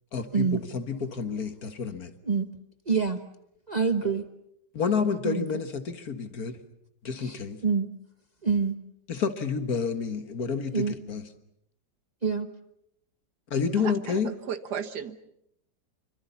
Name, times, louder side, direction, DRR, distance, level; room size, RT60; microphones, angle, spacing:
voice 1, 0.1-2.1 4.7-6.6 7.0-7.6 9.1-11.2 13.5-14.3, left 5 dB, 60° left, 9 dB, 2.0 m, -29 dB
voice 2, 2.9-3.2 3.7-4.2 5.2-5.4 7.2-7.9 8.4-8.7 10.7-10.9 12.2-12.5, right 5 dB, 30° right, 8 dB, 1.0 m, -26 dB
voice 3, 13.8-15.2, right 7 dB, 75° right, 11 dB, 1.9 m, -35 dB
26.5 x 24.5 x 7.1 m, 0.76 s
omnidirectional pair, 1.8 m